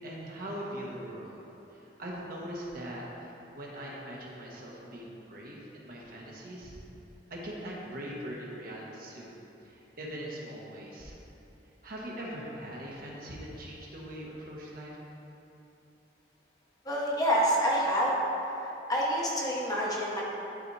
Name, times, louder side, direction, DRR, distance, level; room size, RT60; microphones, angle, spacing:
voice 1, 0.0-1.4 1.7-6.8 7.3-9.3 9.6-11.2 11.8-15.0, equal, 55° right, -3 dB, 1.3 m, -41 dB
voice 2, 16.8-18.1 18.6-20.2, equal, 20° left, -4 dB, 1.0 m, -27 dB
11.0 x 4.1 x 3.2 m, 3.0 s
head